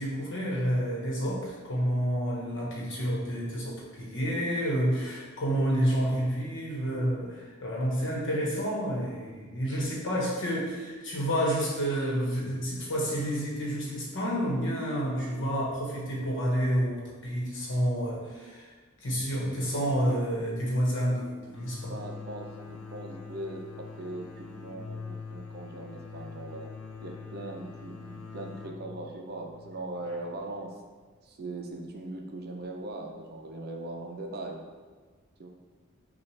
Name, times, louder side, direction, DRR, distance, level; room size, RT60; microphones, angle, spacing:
voice 1, 0.0-18.7 19.0-21.9, equal, 60° left, -3 dB, 1.1 m, -29 dB
sound 1, 21.5-31.0, left 5 dB, 90° left, 0.5 m, -44 dB
voice 2, 21.9-26.7 27.0-30.8 31.2-34.6 35.4-35.5, right 2 dB, 50° right, 2 dB, 0.5 m, -40 dB
5.7 x 2.4 x 3.2 m, 1.5 s
head